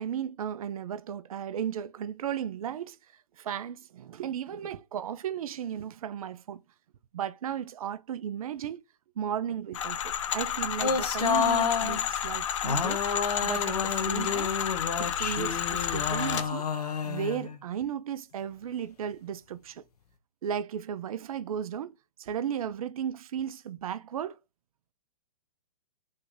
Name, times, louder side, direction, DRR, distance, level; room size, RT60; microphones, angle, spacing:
voice 1, 0.0-3.0 3.4-6.6 7.1-8.8 9.2-13.0 13.4-14.5 15.0-16.7 17.0-19.8 20.4-24.4, right 9 dB, 60° right, 0.4 m, -35 dB
sound 1, 9.7-16.5, left 9 dB, 50° left, 0.5 m, -31 dB
sound 2, 10.8-12.0 12.6-17.6, left 6 dB, 65° left, 0.8 m, -30 dB
3.3 x 2.8 x 3.6 m
figure-of-eight pair, 125°, 21 cm